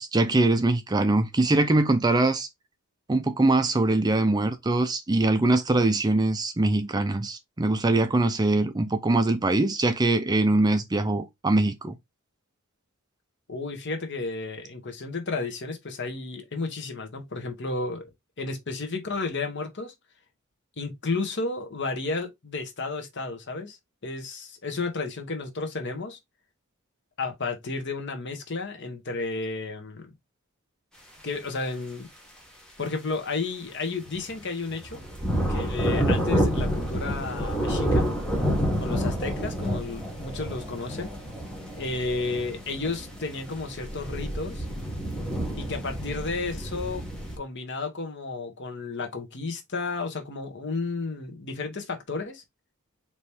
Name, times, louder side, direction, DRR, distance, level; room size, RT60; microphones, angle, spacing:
voice 1, 0.0-2.5 3.1-12.0, right 2 dB, 20° right, 0.4 m, -23 dB
voice 2, 13.5-18.1 18.4-19.9 20.8-23.8 24.0-26.2 27.2-30.1 31.2-32.1 32.8-35.0 35.5-38.1 38.8-41.1 41.8-44.7 45.6-47.0 47.4-52.4, left 3 dB, 55° left, 1.1 m, -32 dB
sound 1, 34.0-34.3 34.7-47.4, equal, 5° left, 1.3 m, -29 dB
4.3 x 3.0 x 3.4 m
head